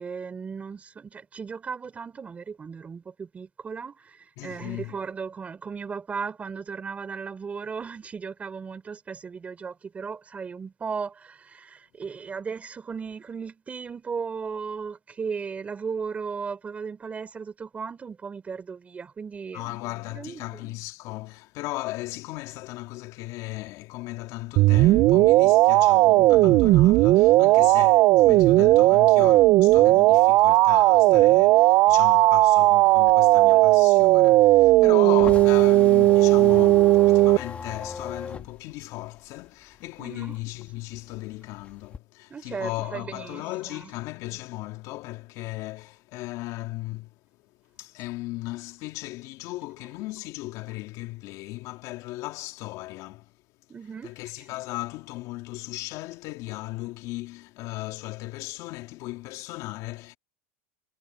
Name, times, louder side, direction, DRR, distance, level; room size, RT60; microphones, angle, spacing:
voice 1, 0.0-19.7 20.1-20.8 40.0-40.4 42.3-43.9 53.7-54.5, right 5 dB, 20° right, 3.3 m, -36 dB
voice 2, 4.4-4.9 19.5-47.2 47.4-47.5 47.8-53.3 54.0-60.2, left 19 dB, 50° left, 2.3 m, -36 dB
sound 1, 24.6-37.4, right 18 dB, 40° right, 0.3 m, -17 dB
sound 2, 32.8-39.9 40.2-42.0, left 5 dB, 20° left, 2.3 m, -38 dB
supercardioid pair, 130°, 7 cm